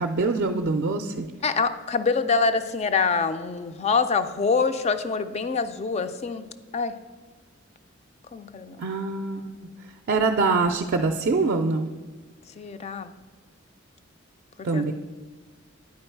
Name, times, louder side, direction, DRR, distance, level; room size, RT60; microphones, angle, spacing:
voice 1, 0.0-1.3 8.8-9.6 10.1-11.9 14.6-14.9, right 3 dB, 50° right, 4 dB, 0.4 m, -24 dB
voice 2, 1.4-6.4 6.7-6.9 8.3-8.8 12.6-13.1 14.6-14.9, left 4 dB, 30° left, 11 dB, 0.3 m, -25 dB
9.5 x 4.6 x 4.5 m, 1.4 s
head